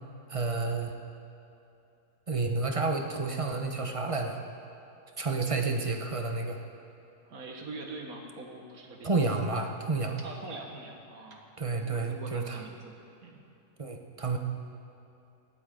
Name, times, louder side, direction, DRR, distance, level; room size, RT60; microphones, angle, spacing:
voice 1, 0.3-0.9 2.3-4.4 5.2-6.6 9.0-10.2 11.6-12.6 13.8-14.4, right 3 dB, 25° right, 3 dB, 0.8 m, -30 dB
voice 2, 7.3-9.3 10.2-11.5 11.9-12.9 13.2-13.4, right 2 dB, 70° right, 1 dB, 2.0 m, -43 dB
18.5 x 13.5 x 3.8 m, 2.8 s
omnidirectional pair, 1.6 m